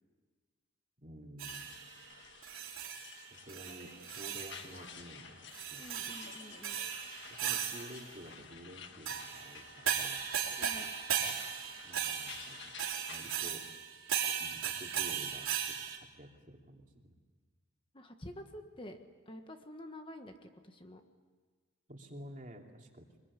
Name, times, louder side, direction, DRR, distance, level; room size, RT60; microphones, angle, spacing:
voice 1, 1.0-1.8 3.5-6.1 7.4-10.2 11.8-12.7 13.1-13.7 14.4-17.1 21.9-23.2, equal, 40° right, 2 dB, 2.9 m, -51 dB
sound 1, 1.4-1.9 2.4-3.2 3.5-4.7 5.5-8.1 9.0-16.0, right 8 dB, 90° right, 3.6 m, -37 dB
sound 2, 1.5-13.5, left 6 dB, 60° left, 1.8 m, -52 dB
voice 2, 5.8-6.8 10.6-10.9 17.9-19.0 19.2-21.0, left 1 dB, 25° left, 5 dB, 1.5 m, -49 dB
25.0 x 21.5 x 9.9 m, 1.4 s
head